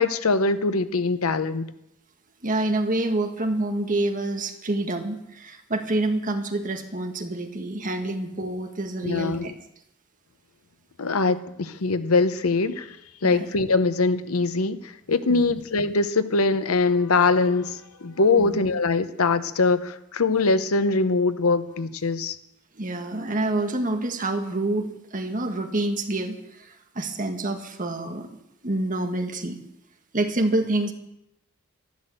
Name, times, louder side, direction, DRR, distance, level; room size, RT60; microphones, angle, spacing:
voice 1, 0.0-1.7 9.0-9.5 11.0-13.0 13.2-22.4, left 3 dB, 85° left, 0.9 m, -22 dB
voice 2, 2.4-9.5 13.2-13.5 15.3-15.5 18.4-18.6 22.8-28.3 28.6-29.6 30.1-30.9, right 2 dB, 40° right, 1.7 m, -27 dB
12.5 x 11.5 x 7.9 m
head